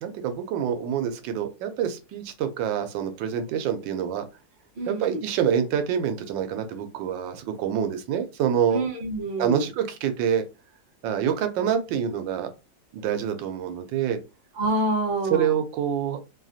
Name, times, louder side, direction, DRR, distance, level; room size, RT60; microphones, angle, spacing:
voice 1, 0.0-4.2 4.9-8.8 9.4-10.4 11.0-12.5 12.9-14.2 15.3-16.2, right 8 dB, 85° right, 7 dB, 1.3 m, -26 dB
voice 2, 4.8-5.2 8.7-9.7 14.5-15.5, right 1 dB, 40° right, 0 dB, 0.7 m, -27 dB
3.3 x 2.4 x 2.6 m, 0.27 s
omnidirectional pair, 2.0 m